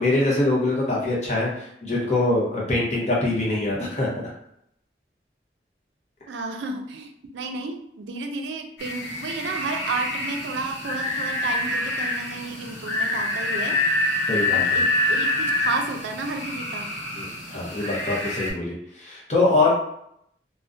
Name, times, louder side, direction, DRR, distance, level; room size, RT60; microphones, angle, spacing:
voice 1, 0.0-4.3 14.3-14.8 17.2-19.7, left 2 dB, 40° left, -4 dB, 0.7 m, -24 dB
voice 2, 6.3-13.8 14.5-16.9, right 3 dB, 85° right, 4 dB, 0.3 m, -32 dB
sound 1, 8.8-18.5, left 2 dB, 80° left, 0.9 m, -26 dB
2.4 x 2.1 x 2.5 m, 0.74 s
head